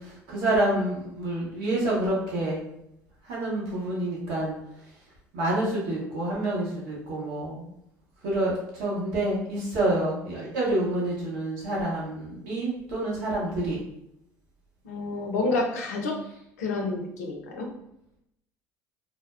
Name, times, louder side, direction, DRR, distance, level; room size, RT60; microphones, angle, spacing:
voice 1, 0.0-2.6 3.2-4.5 5.3-7.7 8.2-13.8, right 1 dB, 70° right, -5 dB, 1.0 m, -28 dB
voice 2, 14.8-16.2 16.6-17.7, left 3 dB, 80° left, 2 dB, 0.5 m, -29 dB
3.3 x 2.1 x 2.3 m, 0.79 s
hypercardioid pair, 65°, 8 cm